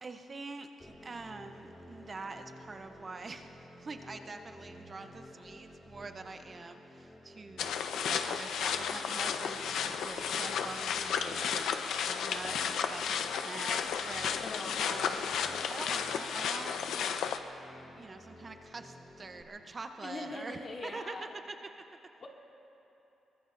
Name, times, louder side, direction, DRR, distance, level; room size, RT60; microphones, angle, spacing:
voice 1, 0.0-14.4 14.8-15.4 15.7-17.1 18.0-21.1 21.5-21.7, right 3 dB, 30° right, 7 dB, 0.6 m, -45 dB
sound 1, 0.8-19.4, equal, 15° left, 1.9 m, -53 dB
sound 2, 7.6-17.4, left 7 dB, 85° left, 0.7 m, -33 dB
voice 2, 14.4-14.8 20.0-21.3 22.2-22.3, left 3 dB, 40° left, 0 dB, 2.0 m, -42 dB
25.5 x 22.5 x 2.5 m, 3.0 s
cardioid pair, 130°, 0 cm